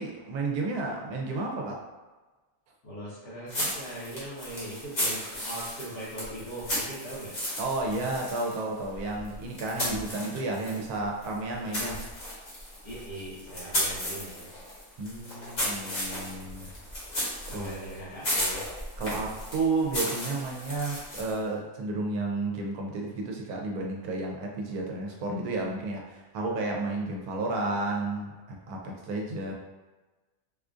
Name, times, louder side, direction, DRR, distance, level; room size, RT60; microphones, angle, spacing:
voice 1, 0.0-1.8 7.6-12.0 15.0-16.7 17.5-17.7 19.0-29.5, right 2 dB, 75° right, 0 dB, 1.0 m, -32 dB
voice 2, 2.8-7.3 12.8-14.5 17.5-18.6, right 1 dB, 85° left, -10 dB, 1.8 m, -40 dB
sound 1, 3.5-10.9 11.2-21.5, equal, 40° left, 1.1 m, -35 dB
3.7 x 2.4 x 2.5 m, 1.2 s
omnidirectional pair, 1.6 m